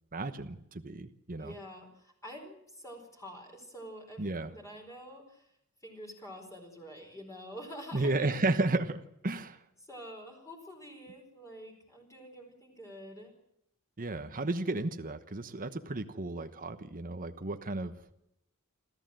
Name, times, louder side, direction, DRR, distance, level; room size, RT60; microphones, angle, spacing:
voice 1, 0.1-1.5 4.2-4.5 7.9-9.6 14.0-17.9, right 2 dB, 40° right, 8 dB, 1.2 m, -33 dB
voice 2, 1.3-5.5 5.8-8.6 9.8-13.3, equal, 15° left, 1 dB, 4.6 m, -47 dB
27.0 x 14.0 x 7.7 m, 0.78 s
head